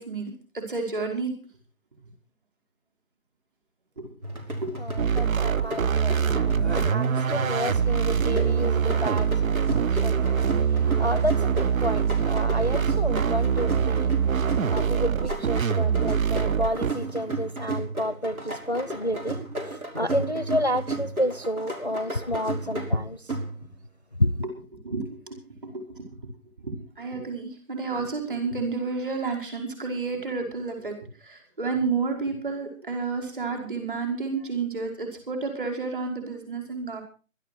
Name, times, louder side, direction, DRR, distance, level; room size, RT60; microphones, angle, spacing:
voice 1, 0.0-1.3 4.0-4.1 4.6-4.8 24.8-25.4 25.6-26.0 26.6-37.0, right 4 dB, 40° right, 5.1 m, -31 dB
sound 1, 4.2-23.9, right 2 dB, 90° right, 5.6 m, -34 dB
voice 2, 4.8-23.3 24.2-24.3, equal, 30° left, 0.7 m, -30 dB
sound 2, 5.0-16.9, right 7 dB, 70° right, 0.6 m, -24 dB
20.0 x 12.5 x 4.5 m
figure-of-eight pair, 170°, 42 cm